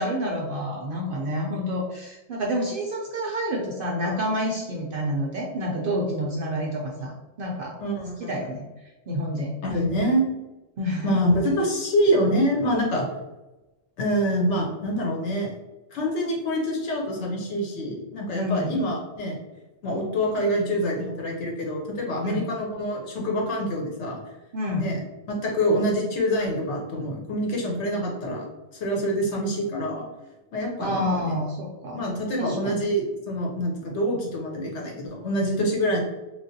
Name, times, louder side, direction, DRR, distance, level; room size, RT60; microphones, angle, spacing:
voice 1, 0.0-7.1 7.4-7.8 8.2-8.7 9.1-9.5 10.8-11.2 18.3-18.8 22.2-22.4 24.5-24.9 30.8-32.0 32.4-32.8, equal, 60° right, -1 dB, 0.6 m, -28 dB
voice 2, 7.8-8.4 9.6-10.2 11.0-13.1 14.0-15.5 15.9-19.4 19.8-24.2 24.8-28.5 28.7-30.1 30.5-31.4 31.9-36.0, equal, 65° left, -1 dB, 1.0 m, -26 dB
3.2 x 2.5 x 2.6 m, 1.1 s
omnidirectional pair, 1.3 m